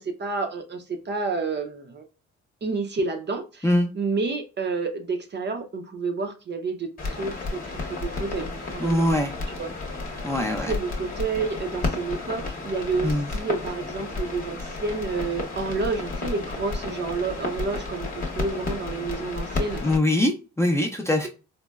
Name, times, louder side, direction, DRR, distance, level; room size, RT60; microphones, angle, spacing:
voice 1, 0.0-2.0 2.6-3.7 3.9-9.1 9.5-9.7 10.6-19.8, right 4 dB, 35° right, 0.6 m, -30 dB
sound 1, 7.0-20.0, left 3 dB, 30° left, 0.9 m, -32 dB
voice 2, 8.8-9.3 10.2-10.7 13.0-13.3 19.8-21.3, left 1 dB, 10° left, 0.5 m, -22 dB
4.0 x 2.1 x 2.3 m
cardioid pair, 90°, 30 cm